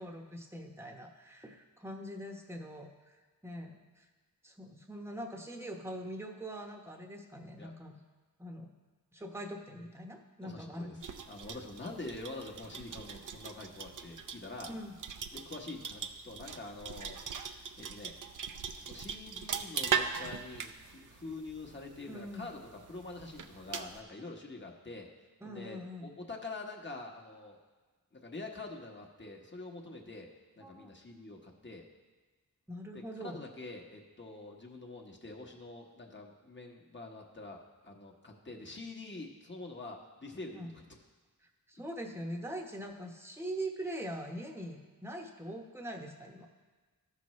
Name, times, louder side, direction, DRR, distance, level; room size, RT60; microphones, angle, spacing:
voice 1, 0.0-3.2 3.4-4.0 4.4-8.0 8.4-8.7 9.1-11.0 14.7-14.9 22.1-22.5 25.4-26.1 30.6-30.9 32.7-33.4 40.6-40.7 41.7-46.5, right 1 dB, 5° right, 2 dB, 0.9 m, -42 dB
voice 2, 10.4-11.0 11.3-14.7 15.3-18.2 18.8-25.1 25.4-27.6 28.1-30.3 30.5-31.9 33.2-40.8, left 2 dB, 30° left, 0 dB, 1.2 m, -46 dB
sound 1, 11.0-24.0, right 7 dB, 60° right, 0.6 m, -40 dB
14.0 x 6.1 x 3.1 m, 1.4 s
wide cardioid pair, 80°, 36 cm